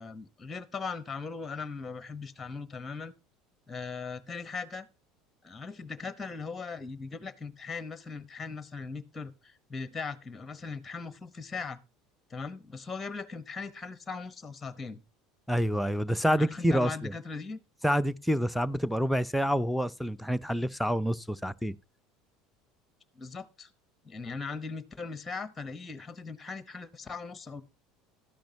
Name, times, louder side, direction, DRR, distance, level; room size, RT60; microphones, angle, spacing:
voice 1, 0.0-3.1 3.7-4.9 5.4-11.8 12.3-15.0 16.4-17.6 23.1-23.7 24.0-27.6, left 4 dB, 20° left, 1.0 m, -39 dB
voice 2, 15.5-17.1 17.8-21.7, equal, ahead, 0.6 m, -27 dB
13.0 x 10.0 x 2.8 m
figure-of-eight pair, 70°, 0 cm